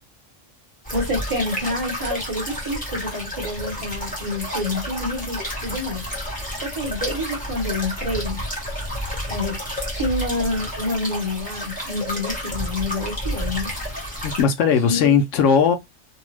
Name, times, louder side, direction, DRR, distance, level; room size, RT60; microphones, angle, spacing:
sound 1, 0.8-14.4, equal, 10° left, 0.9 m, -30 dB
voice 1, 0.9-6.0 6.6-8.4 9.3-9.6 9.9-13.7 14.8-15.1, left 2 dB, 30° right, 0.9 m, -28 dB
voice 2, 14.2-15.8, left 6 dB, 80° left, 0.9 m, -18 dB
2.8 x 2.0 x 3.2 m
omnidirectional pair, 1.3 m